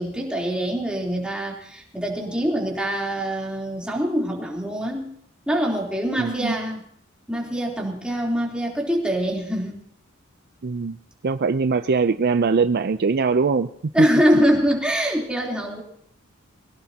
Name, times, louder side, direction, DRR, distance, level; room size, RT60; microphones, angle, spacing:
voice 1, 0.0-5.1 5.5-6.8 7.3-9.8 13.9-15.8, equal, 5° right, -2 dB, 3.4 m, -24 dB
voice 2, 6.2-6.6 10.6-11.0 11.2-13.7, right 4 dB, 50° right, 11 dB, 0.5 m, -21 dB
22.0 x 17.5 x 2.9 m, 0.67 s
head